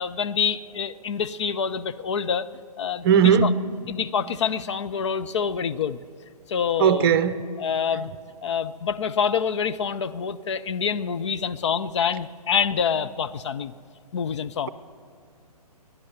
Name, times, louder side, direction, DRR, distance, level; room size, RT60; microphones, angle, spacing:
voice 1, 0.0-2.5 2.8-3.5 3.9-6.0 6.5-7.1 7.6-8.1 8.4-13.7 14.1-14.7, left 7 dB, 45° left, 0.5 m, -26 dB
voice 2, 3.0-3.5 6.8-7.4, right 8 dB, 35° right, 0.7 m, -18 dB
18.5 x 11.0 x 6.8 m
figure-of-eight pair, 135°, 20 cm